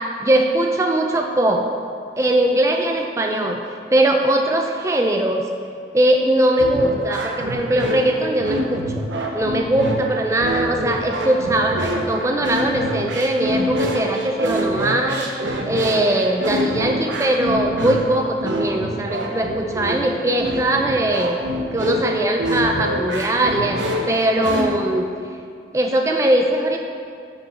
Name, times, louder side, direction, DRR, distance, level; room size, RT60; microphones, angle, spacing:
voice 1, 0.2-1.7 2.2-3.6 3.9-5.4 5.9-9.1 9.3-15.3 15.7-21.4 21.7-25.1 25.7-26.8, right 1 dB, 15° right, 3 dB, 0.3 m, -20 dB
sound 1, 6.6-24.7, equal, 80° right, 0.8 m, -25 dB
6.1 x 5.0 x 6.0 m, 2.3 s
head